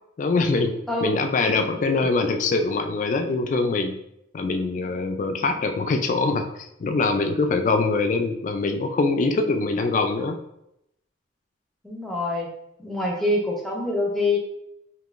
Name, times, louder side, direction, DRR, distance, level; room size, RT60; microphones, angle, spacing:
voice 1, 0.2-4.0 4.3-6.5 6.8-10.4, left 3 dB, 40° left, 6 dB, 0.3 m, -23 dB
voice 2, 11.8-12.5 12.8-14.4, left 2 dB, ahead, -3 dB, 0.6 m, -25 dB
3.6 x 2.6 x 2.4 m, 0.80 s
head